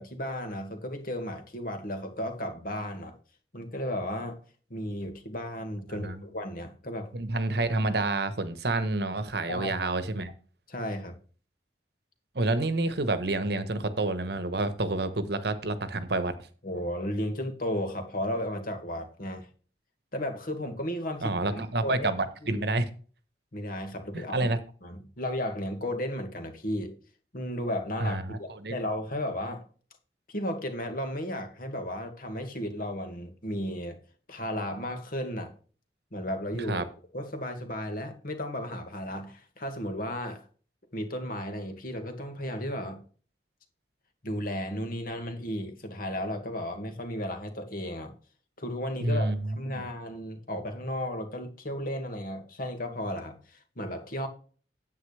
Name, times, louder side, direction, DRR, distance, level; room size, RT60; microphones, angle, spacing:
voice 1, 0.0-3.1 3.5-4.4 4.7-7.1 9.5-9.9 10.7-11.2 16.6-19.5 20.1-22.1 22.4-22.6 23.5-24.5 24.8-27.0 27.3-29.6 30.3-34.0 34.3-35.5 36.1-36.8 37.1-40.4 40.9-43.0 44.2-48.1 48.6-54.3, left 1 dB, 50° left, 2.0 m, -34 dB
voice 2, 5.9-6.2 7.1-10.3 12.3-16.5 21.2-22.9 24.1-24.6 28.0-28.8 36.7-36.9 49.0-49.8, right 2 dB, 65° right, 1.1 m, -29 dB
9.8 x 8.6 x 3.3 m
head